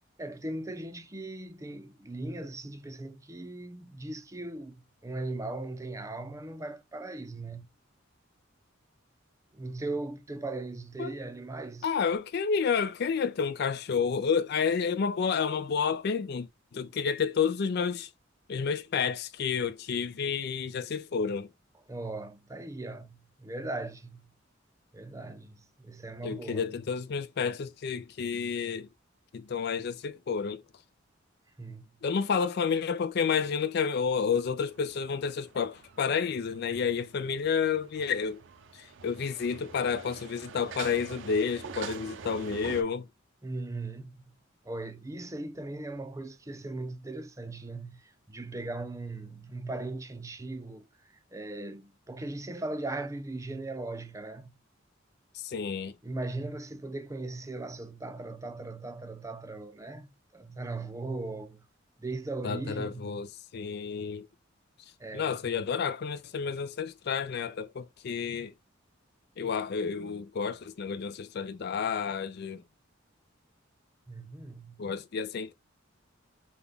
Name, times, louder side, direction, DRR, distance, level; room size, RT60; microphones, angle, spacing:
voice 1, 0.2-7.7 9.5-11.9 21.9-24.3 24.9-26.7 31.6-32.0 43.4-44.3 44.6-54.5 56.0-61.7 62.0-63.1 65.0-65.6 74.1-74.9, right 2 dB, 15° right, 0.5 m, -39 dB
voice 2, 11.8-18.1 18.5-21.5 26.2-28.9 29.3-30.6 32.0-38.4 38.7-43.1 55.3-55.9 62.4-64.3 65.1-68.5 69.4-72.6 74.8-75.5, left 6 dB, 55° left, 0.4 m, -30 dB
sound 1, 34.7-42.8, right 5 dB, 65° right, 0.6 m, -46 dB
5.3 x 2.3 x 3.5 m
head